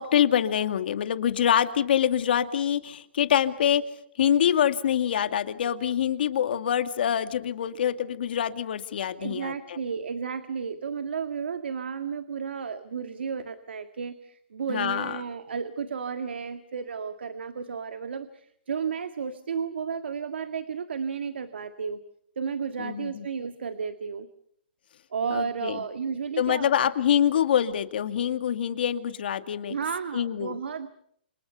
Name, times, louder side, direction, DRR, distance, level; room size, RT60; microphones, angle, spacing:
voice 1, 0.0-3.8 4.2-9.8 14.7-15.2 22.8-23.2 25.3-25.8 26.4-29.8 30.1-30.6, left 9 dB, 65° left, 9 dB, 2.3 m, -25 dB
voice 2, 9.2-22.0 22.4-24.3 25.1-26.9 29.7-30.9, right 6 dB, 85° right, 9 dB, 1.8 m, -33 dB
29.5 x 27.0 x 5.6 m, 0.69 s
hypercardioid pair, 145°, 6 cm